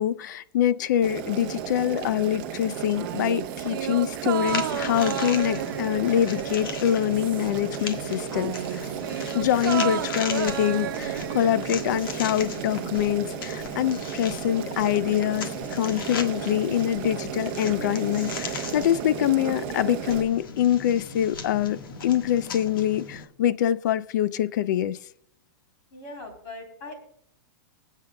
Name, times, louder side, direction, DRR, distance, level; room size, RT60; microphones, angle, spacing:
voice 1, 0.0-25.0, left 11 dB, 55° left, 0.5 m, -25 dB
Boiling, 1.0-20.2, right 9 dB, 35° right, 0.8 m, -34 dB
sound 1, 3.0-7.7 8.0-12.3 12.6-12.7, right 11 dB, 75° right, 0.4 m, -33 dB
sound 2, 4.5-23.3, left 4 dB, 80° left, 1.6 m, -37 dB
voice 2, 25.9-26.9, left 2 dB, 35° left, 3.2 m, -40 dB
23.0 x 8.2 x 2.2 m
supercardioid pair, 175°, 11 cm